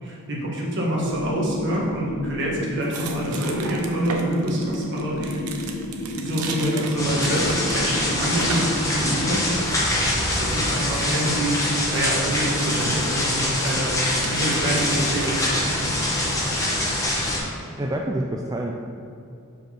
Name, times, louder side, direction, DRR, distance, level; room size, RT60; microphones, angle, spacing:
voice 1, 0.0-5.4 6.2-9.4 10.4-15.9, right 1 dB, 55° right, -4 dB, 1.5 m, -26 dB
sound 1, 0.9-9.3, left 1 dB, 65° left, 0.7 m, -31 dB
sound 2, 2.8-17.0, right 4 dB, 75° right, 0.7 m, -38 dB
sound 3, 7.0-17.4, left 1 dB, 15° left, 1.2 m, -24 dB
voice 2, 17.8-18.8, right 1 dB, 15° right, 0 dB, 0.3 m, -28 dB
5.2 x 4.9 x 5.8 m, 2.7 s
head